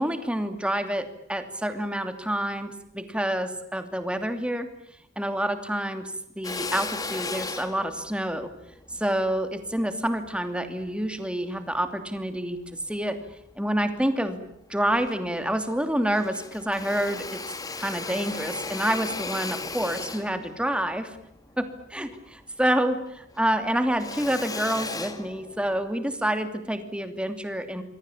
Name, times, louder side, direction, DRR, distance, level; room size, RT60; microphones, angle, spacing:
voice 1, 0.0-4.7 5.2-8.5 8.9-13.2 13.6-14.4 14.7-17.4 17.8-21.2 21.6-27.8, right 1 dB, 5° right, 8 dB, 2.8 m, -28 dB
Drill, 6.4-11.0 11.5-12.7 13.2-14.1 14.5-14.6 14.8-22.8 23.1-25.9, left 3 dB, 20° left, 2.1 m, -37 dB
27.5 x 23.5 x 8.6 m, 0.74 s
head